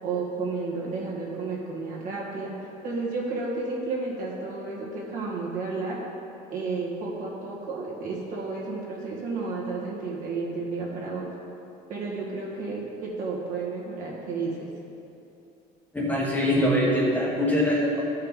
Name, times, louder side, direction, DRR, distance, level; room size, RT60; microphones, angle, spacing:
voice 1, 0.0-2.5 2.8-6.0 6.5-11.3 11.9-14.7, right 3 dB, 50° right, -4 dB, 1.8 m, -32 dB
voice 2, 15.9-18.0, equal, 10° left, -6 dB, 1.4 m, -23 dB
12.5 x 5.5 x 3.7 m, 2.8 s
cardioid pair, 145°, 18 cm